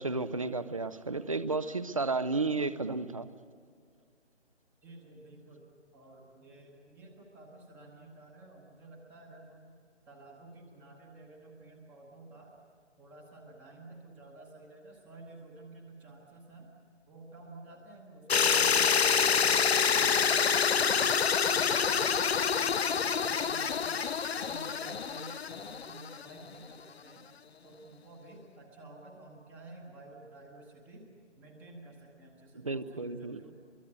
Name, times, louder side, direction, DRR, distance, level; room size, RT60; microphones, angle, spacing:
voice 1, 0.0-3.3 32.5-33.4, right 3 dB, 30° right, 15 dB, 0.6 m, -32 dB
voice 2, 4.8-5.6 5.9-9.7 10.1-12.6 13.0-16.7 17.1-21.1 21.5-27.3 27.6-31.0 31.4-33.5, right 2 dB, 5° right, 1 dB, 1.0 m, -51 dB
sound 1, 18.3-26.3, left 6 dB, 60° left, 0.6 m, -27 dB
24.0 x 22.0 x 8.0 m, 2.1 s
figure-of-eight pair, 150°, 36 cm